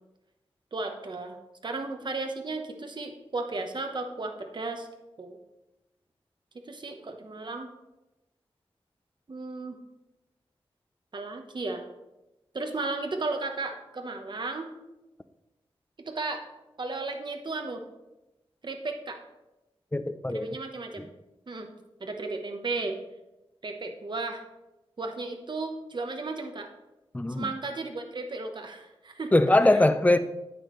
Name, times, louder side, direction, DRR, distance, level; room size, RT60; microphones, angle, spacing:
voice 1, 0.7-1.4 1.6-4.9 5.2-5.4 6.5-7.7 9.3-9.8 11.1-11.9 12.5-14.7 16.0-16.4 16.8-17.8 18.6-19.2 20.3-21.1 21.5-21.7 22.0-23.0 23.6-24.4 25.0-26.7 27.3-29.3, right 3 dB, 50° right, 5 dB, 1.0 m, -34 dB
voice 2, 19.9-20.5 21.0-21.1 27.1-27.5 29.3-30.2, left 1 dB, 15° left, 10 dB, 0.5 m, -21 dB
10.5 x 8.6 x 3.2 m, 1.0 s
wide cardioid pair, 105°, 10 cm